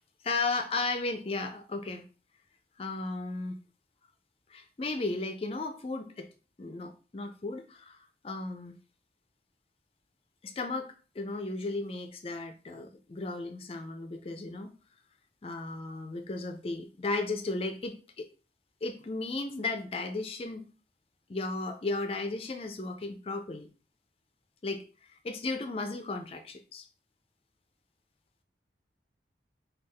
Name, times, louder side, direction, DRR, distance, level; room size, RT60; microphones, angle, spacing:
voice 1, 0.2-2.0 2.8-3.6 4.5-6.3 6.6-8.0 8.2-8.8 10.4-14.7 15.4-18.3 18.8-20.6 21.3-23.7 24.6-24.8 25.2-26.9, left 3 dB, 35° left, 0.4 m, -35 dB
5.3 x 2.4 x 3.3 m
head